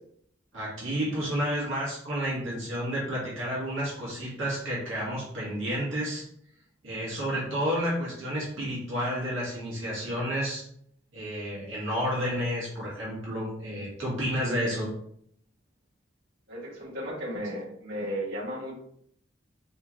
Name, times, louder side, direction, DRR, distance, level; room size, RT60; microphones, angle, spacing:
voice 1, 0.5-6.3 6.8-10.6 11.1-14.9, equal, 80° right, -6 dB, 1.6 m, -31 dB
voice 2, 16.5-18.7, equal, 50° right, -8 dB, 1.7 m, -34 dB
3.7 x 3.5 x 3.0 m, 0.68 s
head